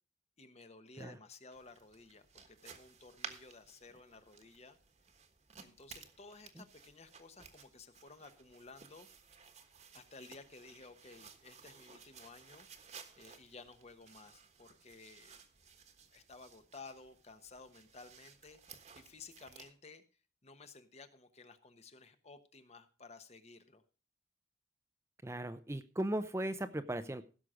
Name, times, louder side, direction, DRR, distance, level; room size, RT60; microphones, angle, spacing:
voice 1, 0.4-4.8 5.6-9.1 9.9-15.4 16.1-20.0 20.4-23.8, left 3 dB, 40° left, 9 dB, 1.1 m, -55 dB
sound 1, 1.5-19.7, right 6 dB, 40° right, 1.3 m, -56 dB
voice 2, 25.2-27.2, right 1 dB, 15° right, 10 dB, 0.6 m, -37 dB
16.0 x 6.5 x 5.0 m, 0.36 s
head